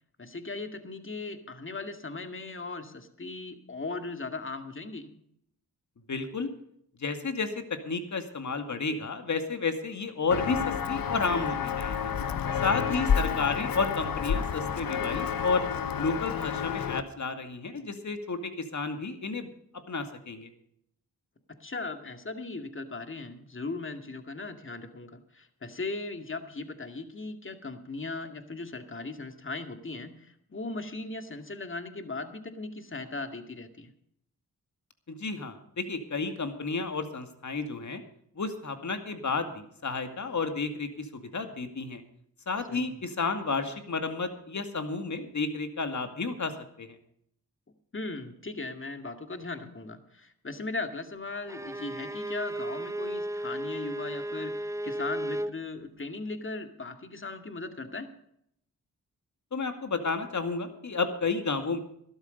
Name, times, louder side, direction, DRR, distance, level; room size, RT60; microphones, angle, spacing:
voice 1, 0.2-5.1 12.8-13.0 21.5-33.9 42.7-42.9 47.9-58.1, left 3 dB, 35° left, 7 dB, 2.2 m, -38 dB
voice 2, 6.1-6.5 7.0-12.1 12.6-15.7 16.0-19.5 19.9-20.5 35.1-38.0 38.4-42.0 42.5-46.5 46.8-46.9 59.5-61.8, left 4 dB, 50° left, 7 dB, 2.3 m, -31 dB
Walk footsteps, 10.3-17.0, left 7 dB, 70° left, 1.1 m, -30 dB
Bowed string instrument, 51.5-55.6, right 1 dB, 10° right, 0.8 m, -34 dB
13.0 x 12.5 x 5.3 m, 0.71 s
cardioid pair, 50°, 36 cm